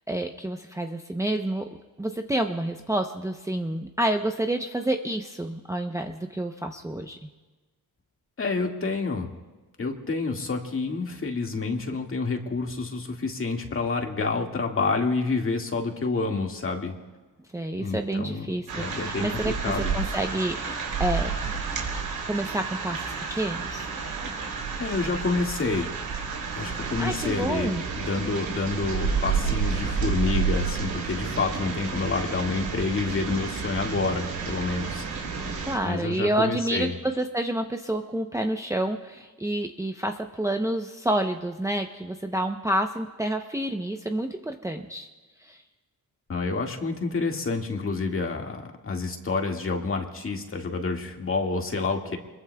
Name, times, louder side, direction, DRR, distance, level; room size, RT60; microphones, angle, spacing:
voice 1, 0.1-1.7 2.0-7.3 17.5-19.5 19.9-21.3 22.3-23.8 27.0-27.8 35.6-45.1 45.4-45.6, right 1 dB, 10° right, 4 dB, 0.8 m, -29 dB
voice 2, 8.4-9.3 9.8-17.0 17.8-20.0 24.8-25.9 26.4-35.4 35.8-36.9 46.3-52.2, left 4 dB, 40° left, 2 dB, 2.1 m, -28 dB
sound 1, 18.7-35.8, right 5 dB, 75° right, 3.6 m, -30 dB
27.5 x 22.0 x 2.3 m, 1.2 s
cardioid pair, 100°, 35 cm